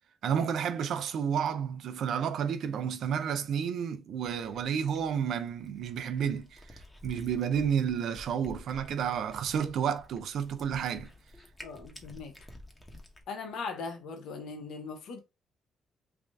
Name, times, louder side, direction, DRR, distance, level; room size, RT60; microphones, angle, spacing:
voice 1, 0.2-6.6 7.0-11.1, right 8 dB, 70° right, 0.5 m, -31 dB
Cat, 4.2-13.2, left 1 dB, 15° left, 0.9 m, -51 dB
voice 2, 11.6-12.3 13.3-15.2, left 4 dB, 75° left, 0.8 m, -39 dB
3.5 x 2.5 x 3.4 m
cardioid pair, 90°, 0 cm